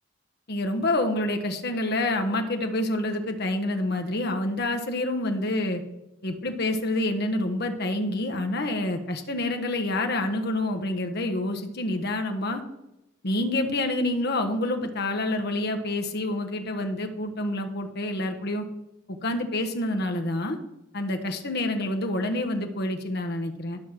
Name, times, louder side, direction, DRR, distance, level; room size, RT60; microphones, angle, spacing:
voice 1, 0.5-5.8 6.2-12.6 13.2-18.6 19.2-20.6 20.9-23.8, left 1 dB, 55° left, 5 dB, 1.2 m, -27 dB
12.0 x 6.4 x 5.9 m, 0.91 s
head